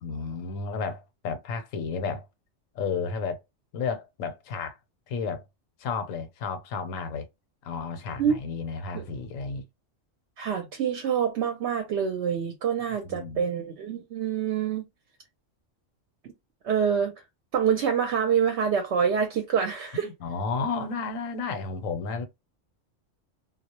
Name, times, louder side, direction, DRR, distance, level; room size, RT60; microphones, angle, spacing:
voice 1, 0.0-2.2 2.7-3.4 3.7-4.8 5.1-5.4 5.8-7.3 7.6-9.7 13.0-13.4 19.9-22.3, left 5 dB, 90° left, 1.0 m, -32 dB
voice 2, 10.4-14.8 16.2-16.3 16.6-17.1 17.5-20.1, right 7 dB, 70° right, 0.8 m, -26 dB
2.3 x 2.0 x 2.8 m
omnidirectional pair, 1.3 m